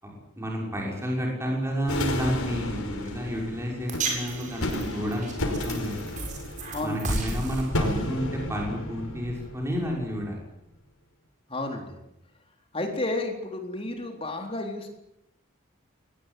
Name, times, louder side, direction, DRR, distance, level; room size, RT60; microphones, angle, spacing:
voice 1, 0.0-6.0 6.8-10.4, equal, 10° right, -1 dB, 6.0 m, -31 dB
sound 1, 1.9-10.1, left 1 dB, 90° left, 5.5 m, -33 dB
sound 2, 3.9-10.3, right 2 dB, 35° right, 7.2 m, -35 dB
voice 2, 6.7-7.1 11.5-12.0 12.7-14.9, left 2 dB, 25° left, 3 dB, 3.9 m, -31 dB
23.0 x 19.5 x 9.2 m, 0.84 s
head